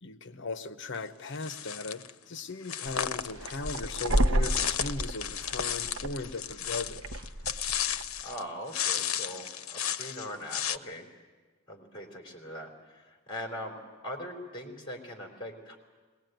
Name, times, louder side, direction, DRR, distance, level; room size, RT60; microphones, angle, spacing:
voice 1, 0.0-7.0, left 3 dB, 60° left, 10 dB, 0.9 m, -38 dB
sound 1, 1.4-2.1 2.6-8.4 8.7-10.8, left 9 dB, 90° left, 0.7 m, -34 dB
sound 2, 2.9-8.2, right 1 dB, 75° right, 0.8 m, -31 dB
voice 2, 8.2-11.1 11.7-13.8 14.0-15.8, equal, 25° left, 2 dB, 3.5 m, -41 dB
21.5 x 20.0 x 9.2 m, 1.4 s
head